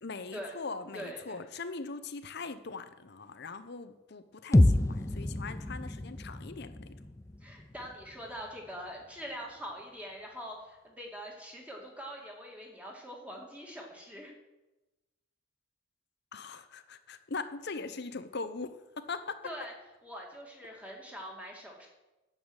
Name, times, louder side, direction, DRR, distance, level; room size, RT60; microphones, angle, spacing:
voice 1, 0.0-6.9 16.3-19.5, left 4 dB, 55° left, 11 dB, 0.8 m, -41 dB
voice 2, 0.9-1.5 7.4-14.3 19.4-19.7 20.0-21.9, equal, 5° right, -1 dB, 2.3 m, -43 dB
sound 1, 4.5-8.5, left 1 dB, 15° left, 0.4 m, -28 dB
10.5 x 7.2 x 8.1 m, 1.1 s
head